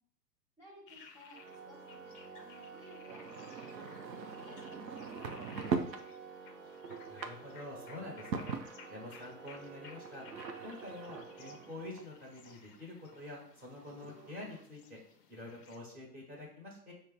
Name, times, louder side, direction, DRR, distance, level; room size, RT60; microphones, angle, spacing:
voice 1, 0.6-1.4 1.6-6.0, equal, 5° left, -5 dB, 1.0 m, -58 dB
sound 1, 0.9-15.8, left 5 dB, 35° left, 0.5 m, -58 dB
Organ, 1.3-12.3, right 5 dB, 40° right, 0.9 m, -51 dB
sound 2, 3.1-6.1 6.5-9.2 10.0-12.5 13.1-13.2 13.4-13.5 13.7-14.6, right 5 dB, 85° right, 0.6 m, -41 dB
voice 2, 7.1-8.6 8.9-10.3 10.6-15.0 15.3-16.9, left 2 dB, 20° right, -3 dB, 1.2 m, -47 dB
5.1 x 2.1 x 3.9 m, 0.65 s
figure-of-eight pair, 105°, 49 cm